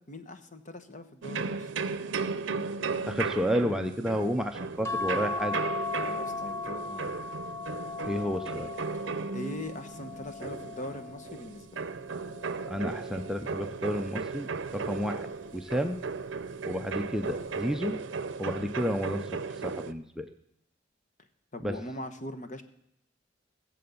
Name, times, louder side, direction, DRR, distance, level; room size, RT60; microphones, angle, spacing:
voice 1, 0.1-1.7 6.0-7.1 9.3-11.8 21.5-22.6, left 1 dB, 40° left, 9 dB, 1.1 m, -41 dB
sound 1, 1.2-19.9, right 4 dB, 70° right, 0.6 m, -36 dB
voice 2, 3.1-5.6 8.1-8.7 12.7-14.5 14.7-15.3 15.5-16.0 16.7-18.0 18.4-19.2 19.6-20.3 21.6-21.7, equal, 5° right, 5 dB, 0.6 m, -31 dB
sound 2, 4.8-11.5 12.1-13.5 14.7-15.2 15.5-15.6, left 3 dB, 15° left, 1.2 m, -37 dB
18.0 x 7.7 x 7.0 m, 0.75 s
head